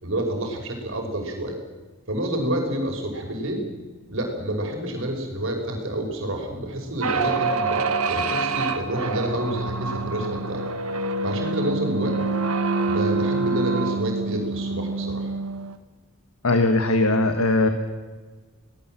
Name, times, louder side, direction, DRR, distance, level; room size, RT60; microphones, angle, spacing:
voice 1, 0.0-1.6 2.1-3.7 4.1-10.6 11.2-12.2 12.8-15.3, right 1 dB, 60° right, 2 dB, 5.6 m, -28 dB
sound 1, 7.0-15.8, right 3 dB, 80° right, 1.7 m, -26 dB
voice 2, 16.4-17.7, left 2 dB, 75° left, 6 dB, 1.7 m, -19 dB
25.5 x 19.0 x 7.7 m, 1.3 s
head